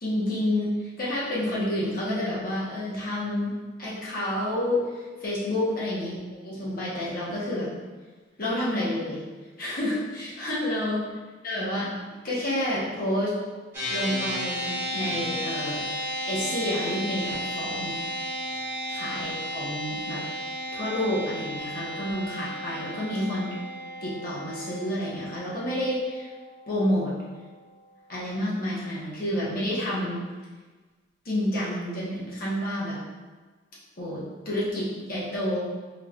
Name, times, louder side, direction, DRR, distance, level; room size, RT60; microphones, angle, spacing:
voice 1, 0.0-4.8 5.2-7.7 8.4-9.2 9.6-11.0 11.4-13.4 13.9-15.8 16.3-18.3 18.9-20.2 20.7-23.6 24.0-26.3 26.7-27.1 28.1-30.2 31.2-33.0 34.0-35.6, left 1 dB, 50° left, -7 dB, 1.0 m, -29 dB
sound 1, 13.7-27.3, equal, 15° right, 1.0 m, -34 dB
3.9 x 3.2 x 2.4 m, 1.3 s
head